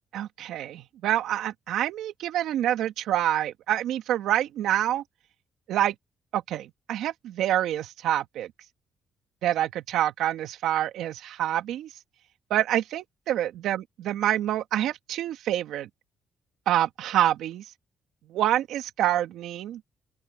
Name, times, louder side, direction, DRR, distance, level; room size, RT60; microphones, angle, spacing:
voice 1, 0.1-5.0 5.7-5.9 6.3-8.5 9.4-11.9 12.5-15.9 16.7-17.6 18.3-19.8, right 12 dB, 85° right, 2.3 m, -27 dB
open air
cardioid pair, 90°, 0 cm